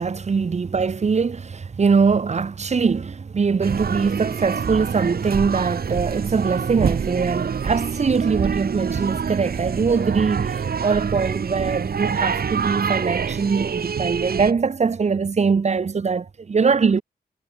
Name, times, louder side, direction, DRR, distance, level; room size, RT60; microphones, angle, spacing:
voice 1, 0.0-17.0, right 5 dB, 40° right, 1.2 m, -22 dB
sound 1, 3.6-14.5, right 6 dB, 65° right, 3.0 m, -26 dB
wide cardioid pair, 115°, 17 cm